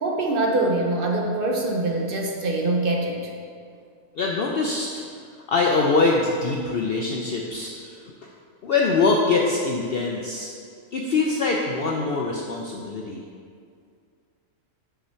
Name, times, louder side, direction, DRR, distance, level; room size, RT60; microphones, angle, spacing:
voice 1, 0.0-3.3, right 2 dB, 50° right, 1 dB, 0.7 m, -24 dB
voice 2, 4.2-5.0 5.5-8.3 8.6-10.5 10.9-13.2, left 3 dB, 60° left, -1 dB, 0.7 m, -23 dB
5.4 x 5.0 x 5.6 m, 2.2 s
omnidirectional pair, 1.4 m